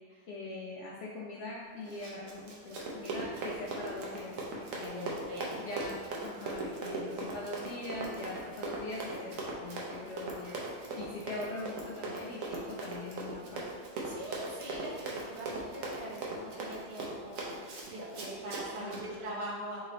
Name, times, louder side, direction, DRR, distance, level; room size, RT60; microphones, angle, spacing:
voice 1, 0.0-5.2 5.6-13.6 18.8-19.3, left 2 dB, 70° left, -4 dB, 0.7 m, -42 dB
Run, 1.8-19.0, right 2 dB, 60° right, 1.0 m, -39 dB
voice 2, 4.8-5.5 14.0-19.9, right 1 dB, 30° right, -5 dB, 0.6 m, -42 dB
3.8 x 3.1 x 3.9 m, 1.6 s
omnidirectional pair, 1.8 m